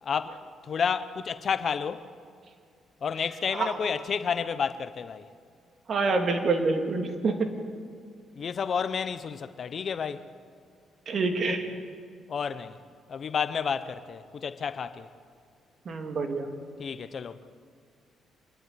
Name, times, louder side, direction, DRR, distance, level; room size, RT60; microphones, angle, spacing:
voice 1, 0.0-2.1 3.0-5.3 8.3-10.2 12.3-12.8 13.1-15.1 16.8-17.4, left 6 dB, 50° left, 0.9 m, -31 dB
voice 2, 5.9-7.4 11.1-11.6 15.9-16.5, right 3 dB, 50° right, 2.6 m, -27 dB
25.5 x 12.0 x 9.7 m
cardioid pair, 90°, 0 cm